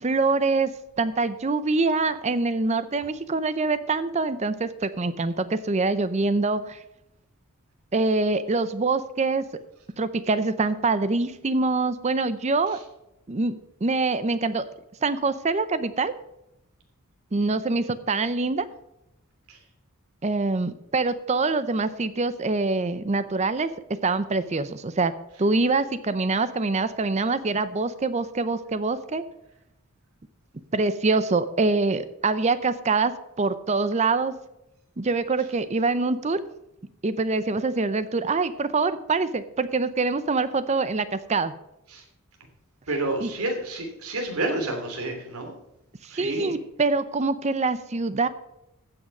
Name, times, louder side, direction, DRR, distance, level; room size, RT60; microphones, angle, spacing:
voice 1, 0.0-6.8 7.9-9.5 10.0-12.8 13.3-14.7 15.0-16.1 17.3-18.7 20.2-23.7 24.0-25.1 25.4-29.2 30.7-34.3 35.0-36.4 37.0-41.5 43.2-43.3 46.2-48.3, right 3 dB, 30° right, 14 dB, 0.5 m, -25 dB
voice 2, 42.9-45.5 46.1-46.6, right 2 dB, 85° right, 3 dB, 3.0 m, -29 dB
15.0 x 6.3 x 5.4 m, 0.88 s
head